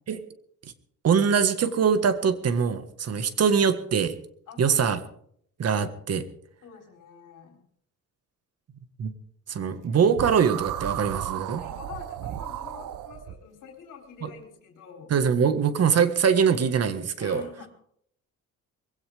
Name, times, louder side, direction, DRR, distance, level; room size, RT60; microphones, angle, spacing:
voice 1, 1.0-4.1 4.6-5.0 5.6-6.3 9.0-9.1 9.5-11.6 14.2-14.3 15.1-17.4, right 6 dB, 50° right, 10 dB, 1.7 m, -23 dB
voice 2, 4.5-4.8 6.6-7.7 11.6-15.1 17.2-17.8, left 6 dB, 80° left, 2 dB, 3.7 m, -46 dB
sound 1, 10.2-13.4, right 12 dB, 80° right, 0.9 m, -34 dB
21.5 x 16.5 x 3.6 m, 0.65 s
cardioid pair, 125°, 31 cm